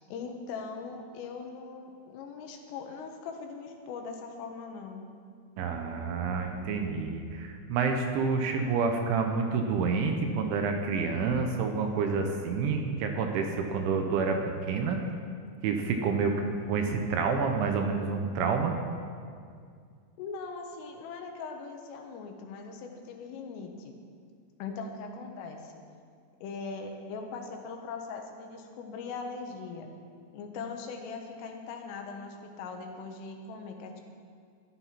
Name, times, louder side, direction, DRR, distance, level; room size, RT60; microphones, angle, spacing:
voice 1, 0.1-5.0 20.2-23.9 24.6-25.8 26.4-29.9 30.3-34.0, left 4 dB, 80° left, 3 dB, 3.8 m, -40 dB
voice 2, 5.6-14.4 14.7-15.0 15.6-18.7, right 5 dB, 75° right, 4 dB, 3.2 m, -28 dB
14.0 x 11.5 x 5.8 m, 2.2 s
omnidirectional pair, 5.8 m